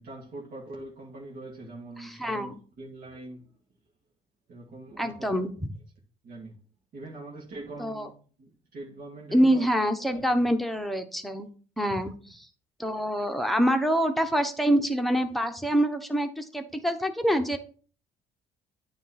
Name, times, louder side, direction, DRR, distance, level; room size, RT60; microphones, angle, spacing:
voice 1, 0.0-2.5 2.8-3.4 4.5-5.5 6.2-6.6 6.9-8.1 8.4-9.6 10.1-10.3, right 2 dB, 60° right, 1.8 m, -43 dB
voice 2, 2.0-2.5 5.0-5.5 7.8-8.1 9.3-11.5 11.8-12.5 12.8-17.6, equal, ahead, 0.9 m, -26 dB
9.3 x 3.1 x 5.7 m
cardioid pair, 110°, 17 cm